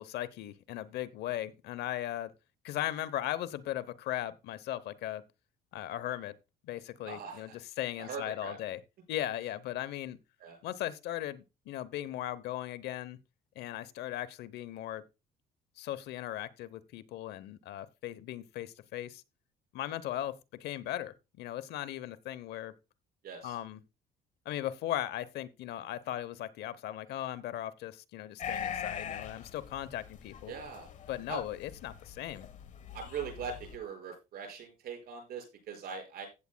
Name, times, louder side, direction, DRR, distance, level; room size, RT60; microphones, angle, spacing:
voice 1, 0.0-2.3 2.6-5.2 5.7-6.3 6.6-7.5 7.8-8.8 9.1-10.2 10.6-13.2 13.6-15.0 15.8-19.2 19.7-22.7 23.4-23.8 24.4-30.5 31.1-32.5, left 13 dB, 75° left, 0.8 m, -38 dB
voice 2, 7.0-7.6 8.0-8.6 10.4-10.6 23.2-23.5 30.5-30.9 31.3-31.4 32.9-36.3, right 5 dB, 65° right, 5.8 m, -41 dB
sound 1, 28.4-33.8, left 8 dB, 45° left, 1.2 m, -42 dB
15.5 x 8.4 x 2.2 m
cardioid pair, 110°, 17 cm